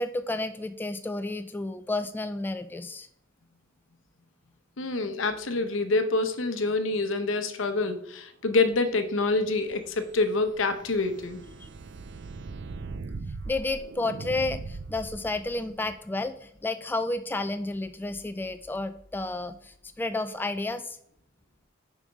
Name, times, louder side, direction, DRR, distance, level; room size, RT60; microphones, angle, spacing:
voice 1, 0.0-3.1 11.6-11.7 13.5-21.0, left 2 dB, 10° left, 9 dB, 0.3 m, -31 dB
voice 2, 4.8-11.4, left 3 dB, 70° left, 9 dB, 0.9 m, -26 dB
sound 1, 9.3-15.7, right 3 dB, 60° right, 0.5 m, -40 dB
6.8 x 4.9 x 5.2 m, 0.70 s
head